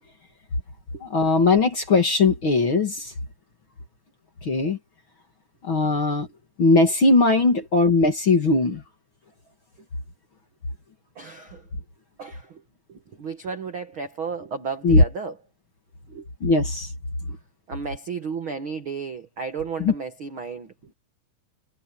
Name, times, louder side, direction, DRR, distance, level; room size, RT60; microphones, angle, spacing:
voice 1, 1.0-3.1 4.4-4.8 5.6-6.3 6.6-8.8 14.8-15.0 16.4-16.9 19.8-19.9, left 3 dB, 40° left, 2.1 m, -19 dB
voice 2, 11.1-11.7 12.2-12.6 12.9-15.3 16.1-16.3 17.3-17.4 17.7-20.9, right 5 dB, 65° right, 1.2 m, -33 dB
omnidirectional pair, 4.9 m